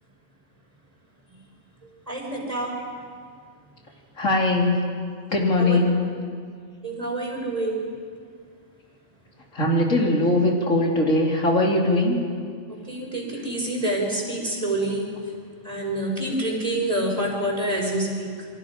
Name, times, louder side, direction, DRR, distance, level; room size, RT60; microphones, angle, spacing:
voice 1, 1.8-2.8 5.6-5.8 6.8-7.9 12.7-15.3 15.6-18.5, right 1 dB, 30° right, -1 dB, 5.0 m, -27 dB
voice 2, 4.2-4.8 5.3-6.0 9.5-12.2, left 2 dB, 90° left, -1 dB, 3.4 m, -20 dB
28.5 x 23.5 x 5.2 m, 2.1 s
omnidirectional pair, 1.3 m